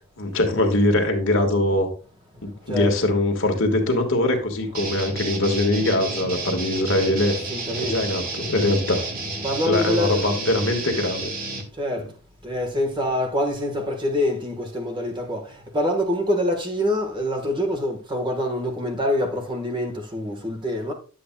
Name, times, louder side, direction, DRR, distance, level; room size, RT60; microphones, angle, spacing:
voice 1, 0.2-1.9 2.4-7.3 7.8-9.0 9.6-11.3, left 1 dB, 65° left, 1.6 m, -22 dB
sound 1, 4.7-11.6, right 2 dB, 40° right, 1.7 m, -31 dB
voice 2, 7.5-8.0 9.4-10.3 11.8-12.1 12.4-20.9, left 1 dB, 25° right, 1.4 m, -25 dB
10.0 x 7.8 x 2.2 m
head